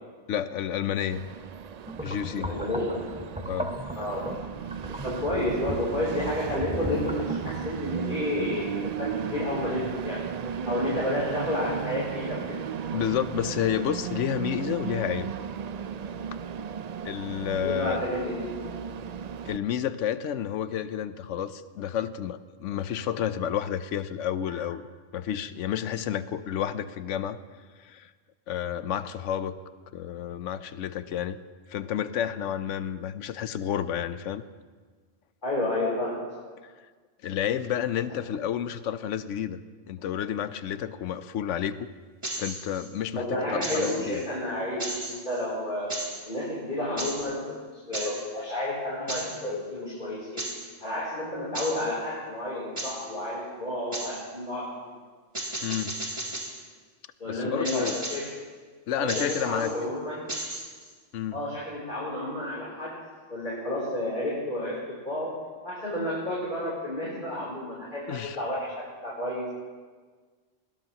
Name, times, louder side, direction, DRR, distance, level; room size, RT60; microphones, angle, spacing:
voice 1, 0.3-1.3 2.0-2.5 3.5-3.7 12.9-15.3 17.0-18.0 19.5-24.8 25.1-27.4 27.8-28.1 28.5-29.6 29.9-31.4 31.7-34.4 36.6-36.7 37.2-39.6 39.9-41.9 42.4-44.2 55.6-56.0 57.3-58.0 58.9-59.7 61.1-61.4 68.1-68.4, left 9 dB, 90° left, 13 dB, 1.0 m, -30 dB
Train, 1.1-19.6, right 7 dB, 65° right, 0.4 m, -35 dB
sound 1, 1.9-7.6, right 1 dB, 5° right, 0.6 m, -37 dB
voice 2, 2.3-3.0 3.9-4.2 5.0-8.7 9.0-12.6 17.6-18.7 24.5-24.6 35.4-36.2 43.2-46.0 46.3-50.4 50.8-54.9 57.2-58.3 59.0-60.2 61.3-63.0 63.3-65.4 65.6-69.5, left 1 dB, 40° left, -7 dB, 3.5 m, -31 dB
sound 2, 42.2-42.9 43.6-44.3 44.8-45.4 45.9-46.2 47.0-47.3 47.9-48.2 49.1-49.4 50.4-50.7 51.5-51.9 52.8-53.1 53.9-54.2 55.3-56.6 57.6-58.3 59.1-59.8 60.3-60.9, right 1 dB, 25° right, 2.3 m, -35 dB
20.5 x 17.5 x 2.9 m, 1.5 s
omnidirectional pair, 1.2 m